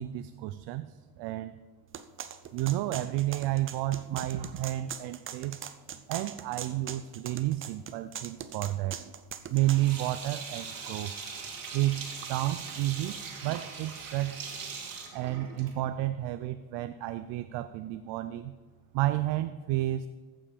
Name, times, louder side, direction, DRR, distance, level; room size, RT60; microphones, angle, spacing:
voice 1, 0.0-1.5 2.5-5.6 6.1-9.1 9.5-11.1 11.7-14.4 15.1-18.5 18.9-20.1, right 15 dB, 85° right, 12 dB, 0.5 m, -31 dB
sound 1, 1.9-9.8, right 8 dB, 30° right, 0.5 m, -41 dB
Sink (filling or washing), 9.5-15.9, right 5 dB, 50° right, 1.9 m, -41 dB
14.5 x 5.7 x 5.1 m, 1.4 s
cardioid pair, 130°, 42 cm